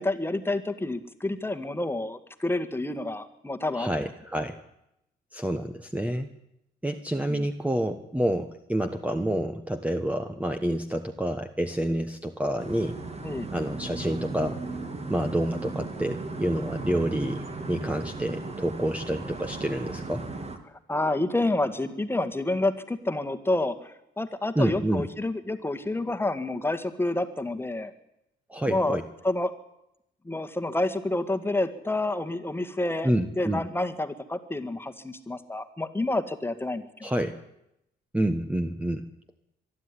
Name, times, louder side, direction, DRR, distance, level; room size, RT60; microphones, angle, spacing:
voice 1, 0.0-4.1 7.3-7.5 13.2-13.5 20.9-27.9 28.7-29.0 29.2-29.5 30.3-33.1 33.4-36.9, left 2 dB, 10° left, 8 dB, 1.9 m, -29 dB
voice 2, 3.7-4.6 5.3-6.3 6.8-13.0 13.5-14.6 15.1-20.2 24.5-25.1 28.5-29.0 33.0-33.6 37.0-37.4 38.1-39.1, right 1 dB, 5° right, 7 dB, 1.3 m, -28 dB
sound 1, 12.6-20.6, right 3 dB, 30° right, 2.8 m, -36 dB
23.0 x 12.5 x 10.0 m, 0.83 s
cardioid pair, 90°, 20 cm